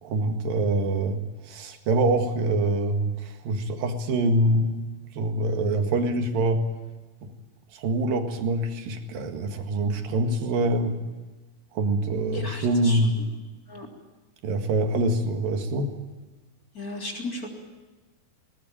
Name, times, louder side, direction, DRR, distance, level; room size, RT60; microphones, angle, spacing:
voice 1, 0.0-4.8 5.2-6.6 7.2-7.3 7.7-11.0 11.8-13.2 14.4-16.0, right 2 dB, 70° right, 6 dB, 3.6 m, -25 dB
voice 2, 12.3-13.2 13.7-13.9 16.7-17.5, left 2 dB, 25° left, 2 dB, 3.7 m, -36 dB
20.0 x 20.0 x 8.8 m, 1.2 s
omnidirectional pair, 4.2 m